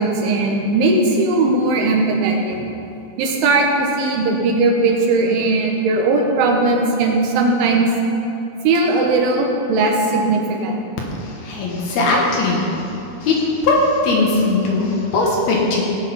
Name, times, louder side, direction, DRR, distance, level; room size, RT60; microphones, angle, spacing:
voice 1, 0.0-2.6 3.2-7.9 8.7-10.8, right 3 dB, 90° right, 1 dB, 3.7 m, -18 dB
voice 2, 11.2-12.9 13.2-15.8, left 2 dB, 65° left, -2 dB, 2.9 m, -19 dB
17.0 x 6.5 x 5.6 m, 2.7 s
omnidirectional pair, 5.4 m